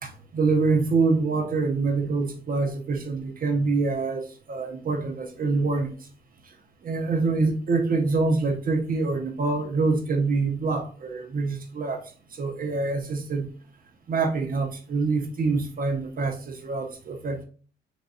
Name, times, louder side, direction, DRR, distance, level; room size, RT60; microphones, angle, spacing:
voice 1, 0.0-5.9 6.8-12.0 12.4-13.5 14.1-17.5, right 3 dB, 45° right, 0.9 m, -25 dB
4.1 x 3.3 x 2.4 m
cardioid pair, 90°, 20 cm